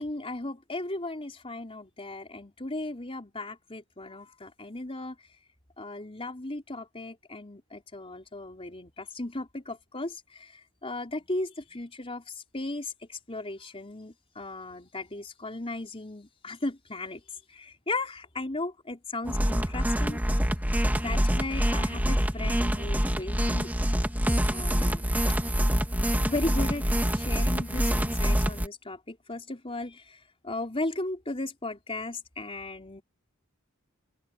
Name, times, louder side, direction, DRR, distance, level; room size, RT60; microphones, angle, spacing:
voice 1, 0.0-5.1 5.8-10.5 10.8-12.2 12.5-17.2 17.5-20.2 20.9-23.7 24.4-25.1 26.2-30.2 30.4-33.0, left 2 dB, 25° left, 4.2 m, -36 dB
sound 1, 19.3-28.7, equal, 10° right, 2.3 m, -26 dB
open air
head